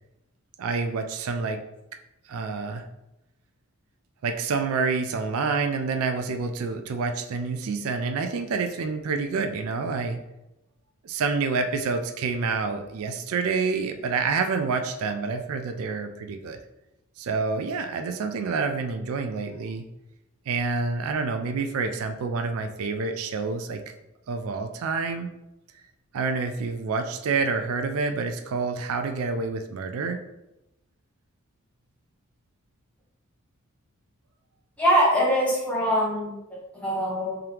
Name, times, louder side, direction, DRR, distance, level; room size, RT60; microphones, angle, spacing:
voice 1, 0.6-1.6 2.3-2.8 4.2-10.2 11.0-16.6 17.2-19.9 20.5-23.8 24.3-25.3 26.1-30.2, right 4 dB, 80° right, 7 dB, 0.4 m, -28 dB
voice 2, 34.8-37.4, equal, 5° left, -6 dB, 1.1 m, -23 dB
3.5 x 2.9 x 3.4 m, 0.91 s
head